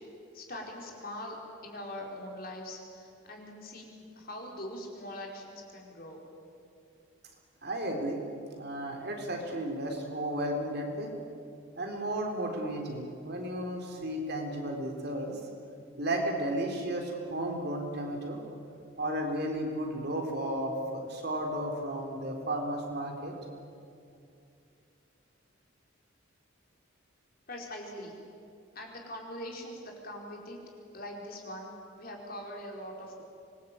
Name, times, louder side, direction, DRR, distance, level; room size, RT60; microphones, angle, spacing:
voice 1, 0.3-1.4 1.6-6.2 27.5-28.1 28.7-30.6 30.9-33.2, left 1 dB, 45° left, 0 dB, 4.7 m, -42 dB
voice 2, 7.6-8.2 8.6-11.1 11.8-15.4 16.0-18.4 19.0-23.3, right 1 dB, 50° right, 2 dB, 3.9 m, -33 dB
26.0 x 21.0 x 9.0 m, 2.5 s
head